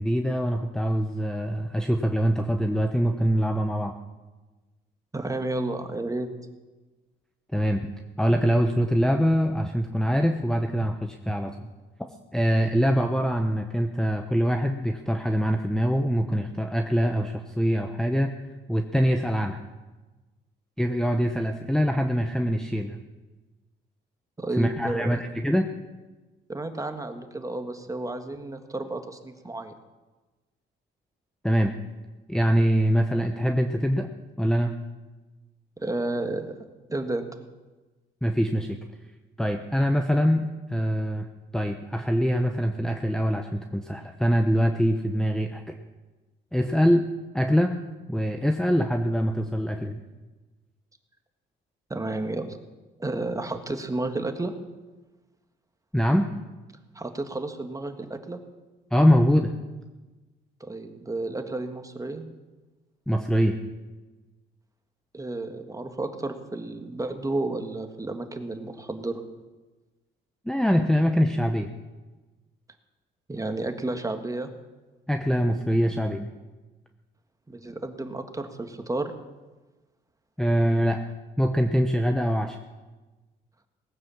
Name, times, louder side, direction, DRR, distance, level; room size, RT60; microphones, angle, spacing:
voice 1, 0.0-4.0 7.5-7.9 8.2-11.5 12.3-18.3 18.7-19.6 20.8-23.0 24.6-25.7 31.4-31.7 32.3-34.1 34.4-34.7 38.2-38.8 39.4-41.3 41.5-45.8 46.5-47.0 47.3-47.8 48.1-50.0 55.9-56.3 58.9-59.5 63.1-63.6 70.5-71.7 75.1-76.3 80.4-81.0 81.4-82.6, equal, 5° left, 5 dB, 0.9 m, -24 dB
voice 2, 5.1-6.3 24.4-25.2 26.5-29.7 35.8-36.6 36.9-37.3 51.9-52.6 53.0-54.5 56.9-58.4 60.6-62.3 65.1-69.2 73.3-74.5 77.5-79.1, right 2 dB, 15° right, 6 dB, 1.7 m, -31 dB
18.5 x 9.5 x 7.2 m, 1.2 s
cardioid pair, 90°, 20 cm